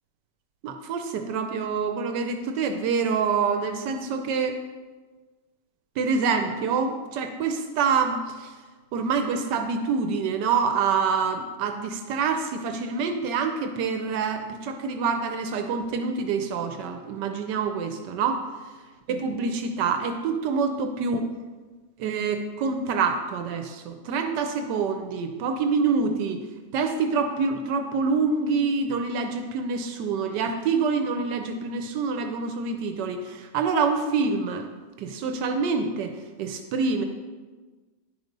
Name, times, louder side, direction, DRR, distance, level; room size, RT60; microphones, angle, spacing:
voice 1, 0.6-4.6 6.0-8.5 8.9-18.4 19.1-21.3 22.0-26.4 26.7-34.7 35.0-36.1 36.4-37.0, right 5 dB, 85° right, 6 dB, 1.3 m, -26 dB
10.0 x 5.1 x 5.2 m, 1.4 s
omnidirectional pair, 1.8 m